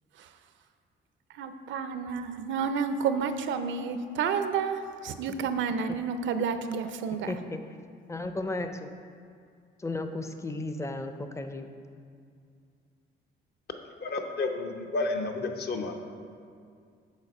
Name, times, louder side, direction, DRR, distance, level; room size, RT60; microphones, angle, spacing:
voice 1, 1.3-7.4, right 6 dB, 70° right, 9 dB, 0.5 m, -30 dB
voice 2, 7.3-7.6 8.1-8.9 9.8-11.7, left 2 dB, 15° left, 7 dB, 0.5 m, -34 dB
voice 3, 14.0-16.0, left 3 dB, 55° left, 4 dB, 0.8 m, -31 dB
7.3 x 4.0 x 5.3 m, 2.3 s
cardioid pair, 90°, 20 cm